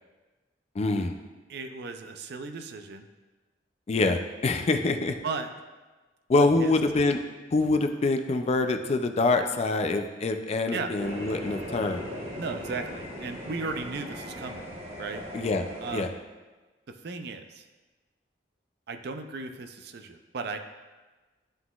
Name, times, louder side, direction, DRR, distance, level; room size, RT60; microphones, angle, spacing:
voice 1, 0.8-1.1 3.9-5.2 6.3-7.2 7.5-12.0 15.3-15.6 15.9-16.1, left 3 dB, 35° left, 7 dB, 0.4 m, -25 dB
voice 2, 1.5-3.1 5.2-5.5 6.4-6.7 10.7-10.9 12.4-14.7 15.0-15.2 15.8-16.2 16.9-17.6 18.9-20.6, right 4 dB, 60° right, 7 dB, 0.4 m, -36 dB
sound 1, 11.0-16.1, equal, 35° right, 1.1 m, -39 dB
11.5 x 3.8 x 2.3 m, 1.2 s
head